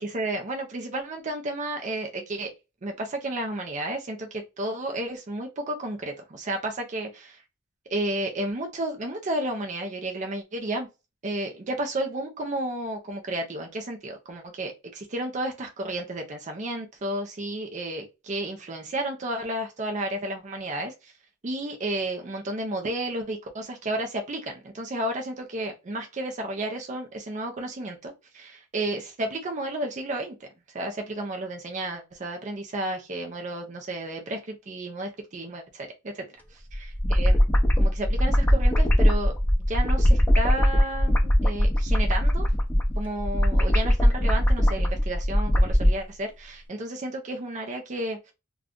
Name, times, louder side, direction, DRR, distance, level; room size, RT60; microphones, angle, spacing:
voice 1, 0.0-2.5 2.8-7.1 7.9-10.9 11.2-21.1 21.4-30.3 30.7-35.9 36.1-36.3 36.7-37.4 37.8-39.3 39.7-42.5 43.0-48.3, right 1 dB, 35° right, 0.5 m, -32 dB
sound 1, 36.7-45.9, equal, 10° left, 0.6 m, -21 dB
2.5 x 2.3 x 3.5 m
head